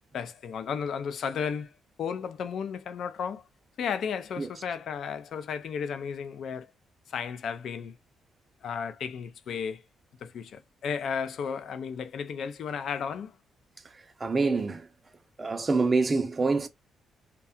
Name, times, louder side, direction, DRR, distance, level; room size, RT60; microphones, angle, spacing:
voice 1, 0.1-1.7 2.0-3.4 3.8-6.7 7.1-7.9 8.6-9.8 10.2-13.3, left 6 dB, 65° left, 0.4 m, -34 dB
voice 2, 13.8-14.9 15.4-16.7, right 3 dB, 30° right, 0.4 m, -26 dB
2.7 x 2.2 x 2.2 m
cardioid pair, 90°, 0 cm